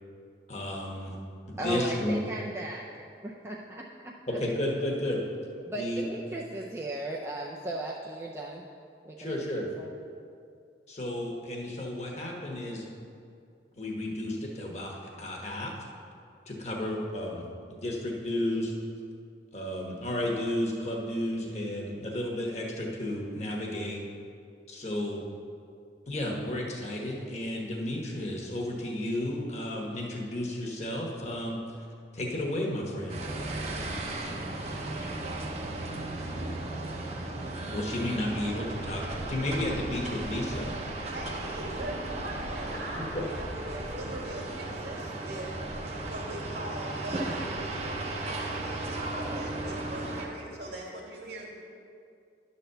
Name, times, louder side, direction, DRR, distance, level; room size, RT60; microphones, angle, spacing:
voice 1, 0.5-1.1 1.5-2.2 4.3-5.2 5.8-6.1 9.2-9.7 10.9-12.9 13.8-15.7 16.5-18.7 19.5-24.0 24.7-25.2 26.0-31.6 32.1-33.2 37.7-39.0 39.3-40.7, left 1 dB, 40° left, -1 dB, 1.3 m, -32 dB
voice 2, 1.6-2.8 3.2-4.4 5.7-8.6 9.0-9.9, right 1 dB, 15° right, -3 dB, 0.4 m, -37 dB
sound 1, 33.1-50.3, right 2 dB, 35° right, 0.8 m, -35 dB
voice 3, 40.3-40.6 41.0-45.6 46.1-51.5, right 1 dB, 70° right, -3 dB, 2.1 m, -41 dB
10.5 x 4.2 x 6.7 m, 2.4 s
head